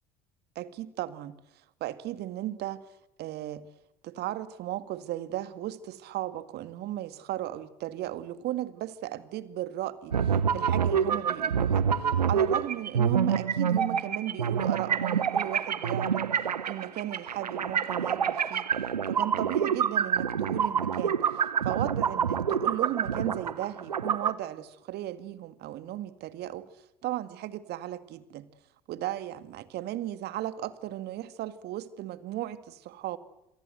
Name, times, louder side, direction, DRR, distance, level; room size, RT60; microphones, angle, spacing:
voice 1, 0.6-1.4 1.8-2.9 3.2-3.6 4.0-11.9 12.3-16.2 16.7-18.7 19.1-26.7 27.0-28.5 28.9-33.2, right 13 dB, 55° right, 2.0 m, -35 dB
sound 1, 10.1-24.3, right 7 dB, 85° right, 1.0 m, -27 dB
27.0 x 27.0 x 8.0 m
figure-of-eight pair, 60°, 21 cm